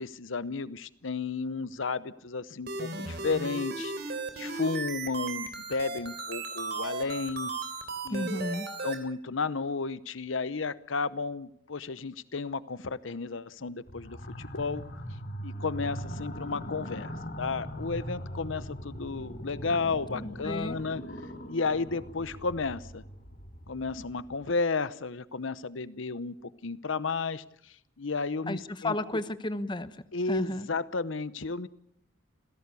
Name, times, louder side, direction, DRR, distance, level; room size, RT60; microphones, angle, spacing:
voice 1, 0.0-7.5 8.0-8.3 8.8-15.0 15.4-21.0 21.5-23.0 23.7-29.2 30.1-31.7, left 4 dB, 75° left, 17 dB, 0.8 m, -33 dB
sound 1, 2.7-8.9, right 3 dB, 50° right, 3.6 m, -36 dB
voice 2, 8.1-8.7 20.1-20.8 28.5-30.0 30.3-30.7, left 1 dB, 25° left, 13 dB, 0.9 m, -33 dB
sound 2, 13.9-24.4, equal, 45° left, 3.1 m, -41 dB
27.5 x 16.5 x 8.3 m, 0.72 s
head